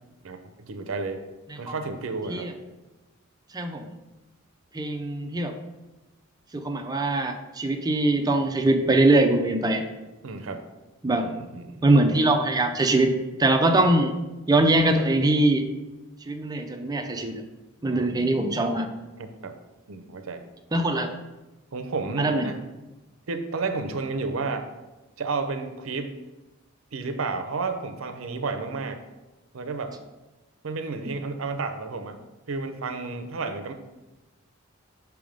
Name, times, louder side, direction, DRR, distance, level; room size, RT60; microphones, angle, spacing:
voice 1, 0.2-1.2 1.6-2.5 10.2-10.6 11.2-11.8 17.9-18.1 19.2-19.6 19.9-20.4 21.7-22.6 23.3-24.7 25.2-26.1 26.9-29.0 29.5-30.0 30.6-32.2 32.5-33.7, right 4 dB, 70° right, 7 dB, 0.6 m, -31 dB
voice 2, 3.5-3.9 4.7-5.6 6.5-9.8 11.0-11.3 11.8-14.1 14.5-15.7 16.3-17.4 17.8-18.9 20.7-21.1 22.2-22.5 31.0-31.1, right 2 dB, 20° right, 5 dB, 0.5 m, -22 dB
6.0 x 3.5 x 5.0 m, 1.1 s
head